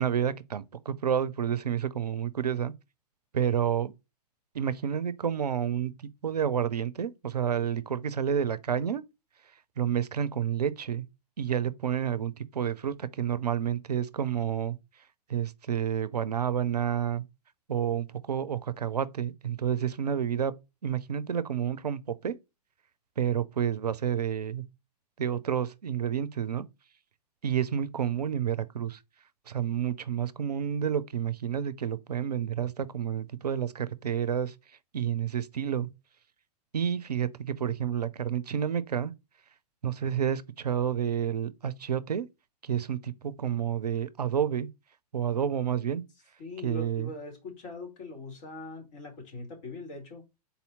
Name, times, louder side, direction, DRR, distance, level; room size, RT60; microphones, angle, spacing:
voice 1, 0.0-2.7 3.3-3.9 4.5-5.9 6.2-9.0 9.8-11.0 11.4-14.8 15.3-17.2 17.7-20.5 20.8-22.3 23.2-24.6 25.2-26.7 27.4-29.0 29.5-34.5 34.9-35.9 36.7-39.1 39.8-42.3 42.6-44.7 45.1-46.0 46.6-47.1, right 8 dB, 75° right, 0.5 m, -29 dB
voice 2, 46.4-50.2, left 3 dB, 45° left, 2.1 m, -42 dB
4.1 x 2.7 x 3.9 m
figure-of-eight pair, 105°, 20 cm